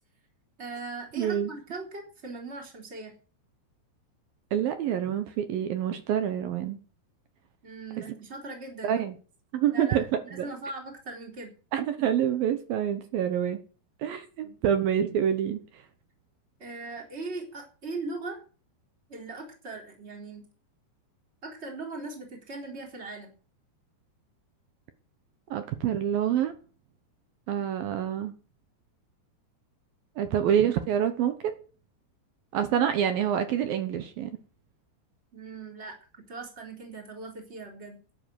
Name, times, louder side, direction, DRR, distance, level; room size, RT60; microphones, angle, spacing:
voice 1, 0.6-3.1 7.6-9.0 9.7-11.5 14.4-14.6 16.6-18.4 19.1-20.5 21.4-23.3 35.3-38.0, right 3 dB, 15° right, 3.6 m, -39 dB
voice 2, 1.2-1.5 4.5-6.8 8.0-8.1 8.8-9.2 9.5-10.5 11.7-13.6 14.0-15.6 25.5-26.5 27.5-28.3 30.2-31.5 32.5-34.4, right 9 dB, 70° right, 2.5 m, -27 dB
12.0 x 10.0 x 7.7 m
omnidirectional pair, 5.1 m